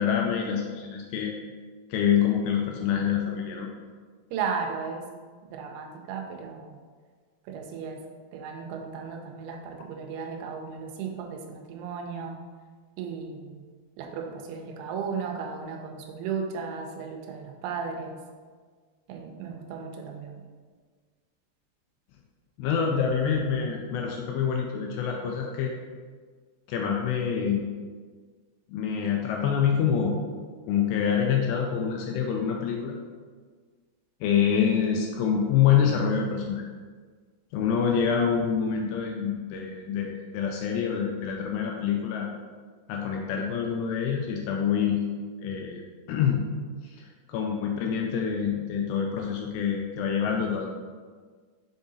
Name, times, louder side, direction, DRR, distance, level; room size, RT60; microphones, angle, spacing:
voice 1, 0.0-1.3 1.9-3.7 22.6-25.7 26.7-27.6 28.7-30.2 30.7-32.9 34.2-36.7 37.5-42.3 42.9-45.0 45.4-45.8 46.1-46.5 46.8-50.7, left 7 dB, 85° left, 1 dB, 2.4 m, -26 dB
voice 2, 4.3-5.0 5.5-6.8 7.5-8.0 8.3-12.4 13.0-13.6 14.0-18.2 19.1-20.4, right 6 dB, 90° right, 2 dB, 3.1 m, -35 dB
6.9 x 3.8 x 3.9 m, 1.5 s
omnidirectional pair, 5.3 m